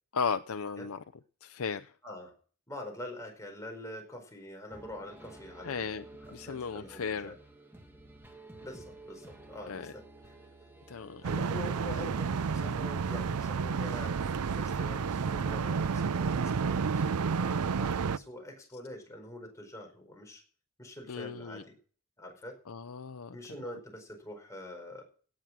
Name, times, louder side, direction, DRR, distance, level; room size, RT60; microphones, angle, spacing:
voice 1, 0.1-1.0 1.4-2.0 5.6-6.0 6.3-7.3 9.7-9.9 10.9-11.2 21.1-21.6 22.7-23.8, left 5 dB, 80° left, 0.6 m, -36 dB
voice 2, 2.0-2.3 2.7-6.0 6.5-7.3 8.6-10.0 11.2-20.4 20.8-21.7 22.2-22.6 23.3-25.0, left 1 dB, 15° left, 4.7 m, -45 dB
sound 1, 4.7-12.7, right 2 dB, 10° right, 1.8 m, -52 dB
sound 2, 11.2-18.2, right 5 dB, 85° right, 0.5 m, -30 dB
17.0 x 7.4 x 6.1 m
head